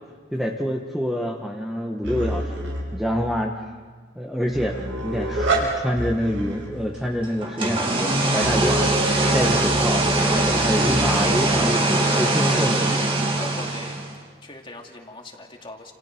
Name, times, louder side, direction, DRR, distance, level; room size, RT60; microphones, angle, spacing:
voice 1, 0.3-3.5 4.1-9.0 9.3-13.0, equal, ahead, 0 dB, 1.3 m, -27 dB
sound 1, 2.0-2.9 4.5-5.7 6.0-6.8 8.4-11.2, right 1 dB, 85° right, 5.9 m, -28 dB
sound 2, 7.4-14.2, right 2 dB, 30° right, 2.8 m, -22 dB
voice 2, 8.2-8.9 13.3-14.0 14.4-15.9, left 2 dB, 25° left, 1 dB, 2.6 m, -40 dB
30.0 x 28.5 x 4.5 m, 1.5 s
head